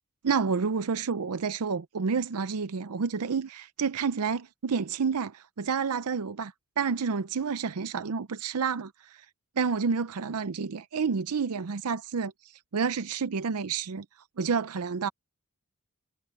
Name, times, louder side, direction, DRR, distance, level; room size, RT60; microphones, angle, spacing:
voice 1, 0.2-9.2 9.6-12.3 12.7-14.1 14.4-15.1, right 5 dB, 85° right, 0.6 m, -29 dB
head